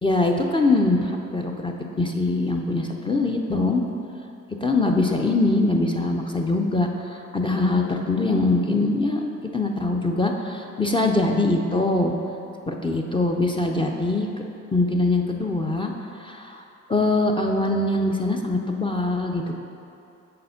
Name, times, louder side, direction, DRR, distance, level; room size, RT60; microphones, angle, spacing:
voice 1, 0.0-3.8 4.6-12.1 12.7-14.3 14.7-15.9 16.2-16.6 16.9-19.5, left 2 dB, 15° left, 1 dB, 0.5 m, -23 dB
6.6 x 4.3 x 5.6 m, 2.7 s
cardioid pair, 90°, 30 cm